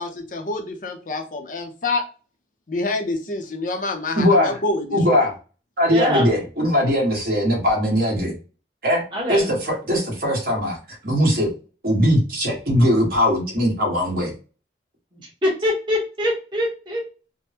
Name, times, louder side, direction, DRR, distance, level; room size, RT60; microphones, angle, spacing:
voice 1, 0.0-2.0 2.7-5.2, left 2 dB, 45° left, 4 dB, 0.6 m, -27 dB
voice 2, 4.1-4.6 4.9-5.3 5.8-8.3 8.8-9.0 9.3-10.8 11.0-11.5 11.8-14.3, equal, 50° right, -2 dB, 1.4 m, -20 dB
voice 3, 5.9-6.3 9.1-9.5 15.6-17.0, left 1 dB, 25° right, -3 dB, 1.1 m, -24 dB
3.4 x 2.1 x 2.8 m, 0.35 s
head